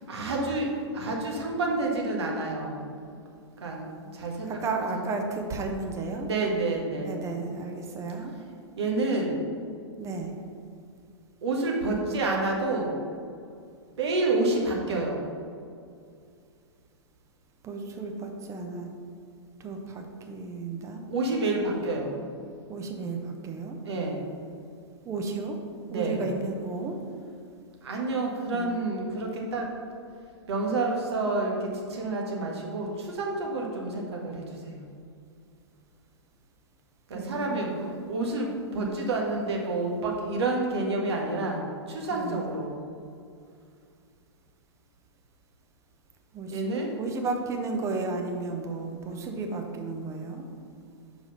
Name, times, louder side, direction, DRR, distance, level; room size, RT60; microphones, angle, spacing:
voice 1, 0.0-2.9 3.6-4.5 4.9-5.0 6.2-7.2 8.8-9.4 11.4-13.0 14.0-15.2 21.1-22.1 23.8-24.2 25.9-26.2 27.8-29.7 30.5-34.8 37.1-41.6 41.9-42.8 46.5-46.9, right 2 dB, 65° right, -1 dB, 1.5 m, -29 dB
voice 2, 4.5-6.3 7.0-8.3 10.0-10.3 17.6-18.9 19.6-21.0 22.7-23.8 25.0-25.6 25.9-27.0 28.5-28.8 37.1-37.8 42.1-42.4 46.3-50.5, right 3 dB, 20° right, 3 dB, 0.8 m, -33 dB
5.8 x 5.0 x 5.4 m, 2.4 s
figure-of-eight pair, 110°, 15 cm